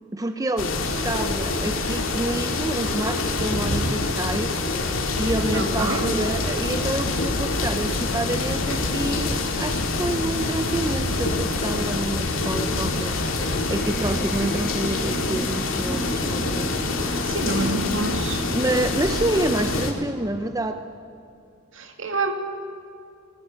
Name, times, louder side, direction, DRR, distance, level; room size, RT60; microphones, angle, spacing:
voice 1, 0.1-17.5 18.5-20.8, right 1 dB, 15° right, 8 dB, 0.7 m, -28 dB
sound 1, 0.6-19.9, left 3 dB, 85° left, 2.5 m, -26 dB
voice 2, 5.5-6.1 17.3-18.4 21.7-22.3, right 2 dB, 70° right, 5 dB, 2.3 m, -27 dB
sound 2, 6.6-17.1, left 2 dB, 60° left, 0.9 m, -34 dB
sound 3, 13.8-19.9, equal, ahead, 1.2 m, -35 dB
20.0 x 18.5 x 8.2 m, 2.5 s
head